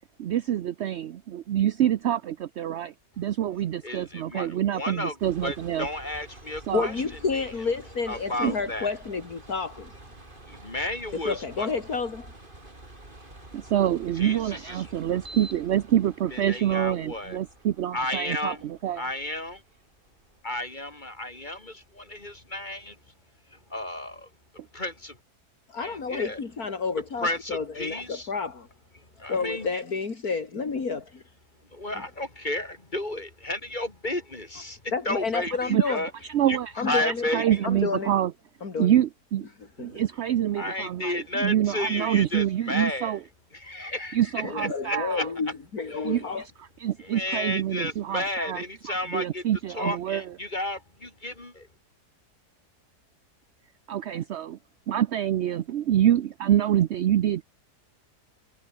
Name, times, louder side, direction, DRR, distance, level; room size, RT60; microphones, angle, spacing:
voice 1, 0.2-5.9 6.7-6.9 8.4-8.5 13.5-19.0 35.7-36.0 36.2-36.7 37.0-38.3 38.8-39.5 39.8-43.2 44.1-45.3 46.0-46.2 46.8-50.2 53.9-54.6 54.9-57.4, right 11 dB, 60° right, 0.7 m, -26 dB
voice 2, 3.8-5.2 5.4-7.0 7.3-7.5 8.1-8.9 10.5-11.7 14.2-14.9 16.3-17.4 17.9-18.6 19.0-19.6 20.4-23.0 23.5-24.3 24.7-25.2 25.8-26.4 27.2-28.3 28.9-29.8 31.7-36.1 36.5-36.6 36.8-37.6 39.8-40.0 40.5-43.2 43.5-45.3 45.9-46.1 47.0-49.4 49.7-51.7, left 1 dB, 30° left, 2.9 m, -32 dB
sound 1, 5.2-22.4, right 2 dB, 30° right, 4.8 m, -48 dB
voice 3, 6.7-9.9 11.2-12.3 25.7-28.7 29.3-31.2 34.9-36.0 36.8-37.2 37.6-38.1 38.6-38.9 39.8-39.9 44.4-46.4, left 4 dB, 65° left, 3.2 m, -30 dB
omnidirectional pair, 1.7 m